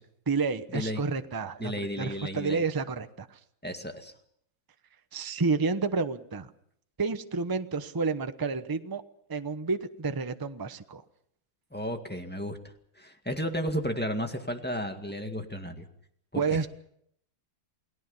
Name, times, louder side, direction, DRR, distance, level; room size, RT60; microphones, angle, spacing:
voice 1, 0.3-3.3 5.1-6.5 7.0-9.0 9.3-11.0 16.4-16.7, right 4 dB, 35° right, 10 dB, 0.3 m, -30 dB
voice 2, 1.6-2.6 3.6-4.1 11.7-12.6 13.0-15.8 16.3-16.6, equal, 5° left, 5 dB, 1.7 m, -33 dB
29.0 x 19.0 x 5.6 m, 0.68 s
omnidirectional pair, 2.3 m